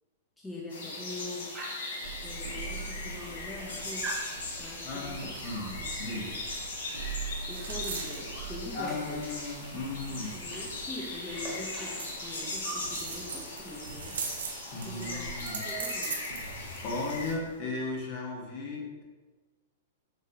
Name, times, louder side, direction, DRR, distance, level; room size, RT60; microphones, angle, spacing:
voice 1, 0.4-1.6 2.2-5.9 7.5-9.2 10.1-14.2 14.4-14.5 14.8-16.3, left 2 dB, 10° left, -4 dB, 0.5 m, -43 dB
sound 1, 0.7-17.3, left 2 dB, 85° left, 0.8 m, -39 dB
Dog, 1.5-2.0 2.8-2.9 3.2-3.7 4.0-4.3 5.5-5.8 7.6-7.8 8.0-10.8 11.1-12.9 14.2-14.3 14.6-14.8 15.1-16.3, right 2 dB, 25° right, 1.0 m, -43 dB
sound 2, 2.0-17.6, right 5 dB, 85° right, 0.5 m, -42 dB
voice 2, 4.8-6.4 8.8-10.4 14.7-15.6 16.8-19.0, left 3 dB, 45° left, -1 dB, 0.9 m, -36 dB
4.1 x 2.7 x 2.3 m, 1.3 s
hypercardioid pair, 130°, 0 cm